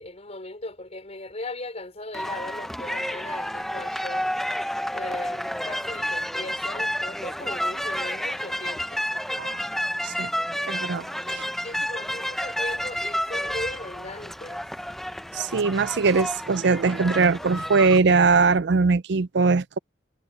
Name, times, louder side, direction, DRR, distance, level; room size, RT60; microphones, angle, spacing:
voice 1, 0.0-4.3 4.9-9.0 11.3-11.4 11.6-14.6, left 2 dB, 35° left, 4.9 m, -38 dB
sound 1, 2.1-18.0, equal, ahead, 0.6 m, -30 dB
voice 2, 10.7-11.0 11.3-11.4 15.3-19.8, right 4 dB, 65° right, 0.5 m, -21 dB
head